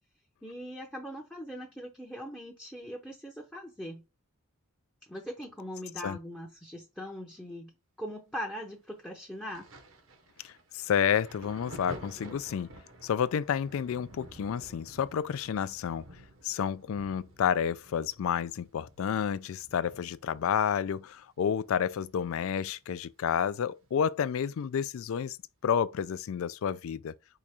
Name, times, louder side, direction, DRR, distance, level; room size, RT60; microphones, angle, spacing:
voice 1, 0.4-4.0 5.1-7.7 8.0-9.7, equal, 5° left, 0.6 m, -41 dB
Thunder, 9.5-22.8 23.1-24.4 25.3-25.4, right 1 dB, 60° right, 0.9 m, -51 dB
voice 2, 10.4-12.7 13.0-16.1 16.4-25.4 25.6-27.1, left 8 dB, 70° left, 0.3 m, -30 dB
4.8 x 2.4 x 4.2 m
head